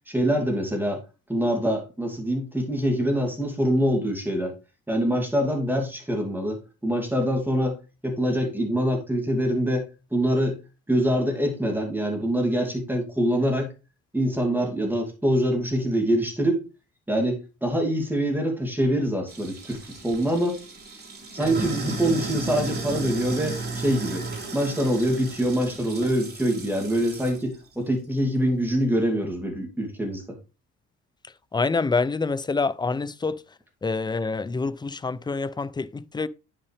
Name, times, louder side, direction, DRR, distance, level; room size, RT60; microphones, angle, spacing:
voice 1, 0.1-1.0 1.3-4.5 4.9-7.8 8.0-9.8 10.1-10.6 10.9-13.7 14.1-16.6 17.1-20.6 21.3-24.3 24.5-30.4, equal, 5° right, 2.6 m, -25 dB
Sink (filling or washing), 19.3-27.4, right 3 dB, 35° right, 3.5 m, -34 dB
voice 2, 31.5-33.4 33.8-36.3, left 4 dB, 15° left, 0.4 m, -26 dB
9.6 x 5.7 x 3.3 m
cardioid pair, 90°, 30 cm